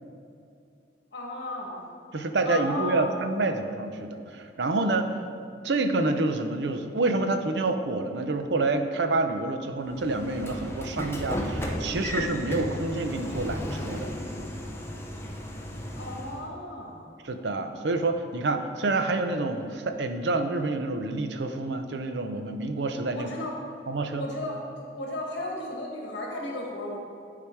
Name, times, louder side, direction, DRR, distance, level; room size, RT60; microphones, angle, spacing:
voice 1, 1.1-1.8 2.4-3.2 15.9-17.0 23.1-23.5 24.1-27.0, left 1 dB, 65° left, -1 dB, 1.7 m, -35 dB
voice 2, 2.1-5.1 5.6-14.1 17.3-23.3 23.9-24.2, right 2 dB, 65° right, 7 dB, 0.6 m, -28 dB
Train / Sliding door, 9.9-16.4, equal, 15° left, 0.7 m, -34 dB
10.0 x 4.9 x 4.6 m, 2.5 s
head